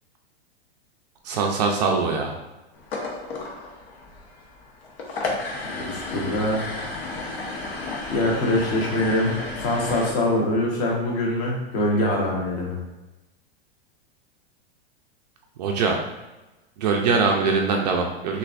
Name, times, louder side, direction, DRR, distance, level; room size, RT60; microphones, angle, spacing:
voice 1, 1.2-2.3 15.6-16.0 16.8-18.4, right 4 dB, 40° right, 2 dB, 0.5 m, -22 dB
sound 1, 2.7-10.1, left 2 dB, 70° left, 1.3 m, -33 dB
voice 2, 5.8-6.6 8.1-9.3 9.6-12.8, left 1 dB, 35° left, -2 dB, 1.1 m, -23 dB
6.4 x 2.5 x 2.5 m, 1.1 s
supercardioid pair, 160°, 32 cm